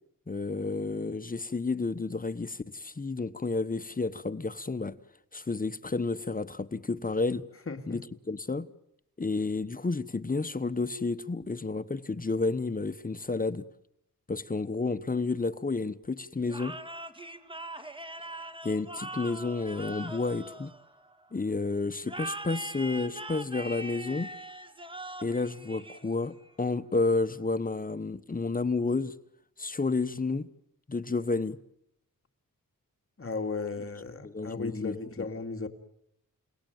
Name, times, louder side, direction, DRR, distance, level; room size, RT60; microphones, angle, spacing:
voice 1, 0.3-5.0 5.3-7.4 7.9-8.0 8.3-8.7 9.2-13.6 14.3-16.8 18.6-20.7 21.3-24.3 25.2-29.1 29.6-30.5 30.9-31.6 34.2-35.2, left 3 dB, 25° left, 0.9 m, -31 dB
voice 2, 7.7-8.0 33.2-35.7, left 4 dB, 40° left, 2.2 m, -35 dB
sound 1, 16.5-21.3 22.0-26.4, right 1 dB, 15° right, 1.7 m, -41 dB
30.0 x 18.5 x 9.3 m
wide cardioid pair, 95°, 33 cm